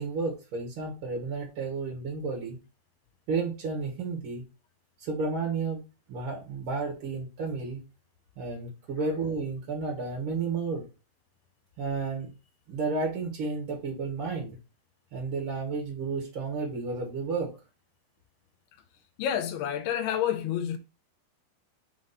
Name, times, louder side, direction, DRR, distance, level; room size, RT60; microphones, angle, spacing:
voice 1, 0.0-2.6 3.3-4.4 5.0-5.8 6.1-7.8 8.4-10.8 11.8-12.3 12.7-14.6 15.1-17.5, right 4 dB, 60° right, 1.4 m, -32 dB
voice 2, 19.2-20.8, left 10 dB, 85° left, 2.6 m, -29 dB
6.2 x 3.0 x 5.6 m
omnidirectional pair, 4.7 m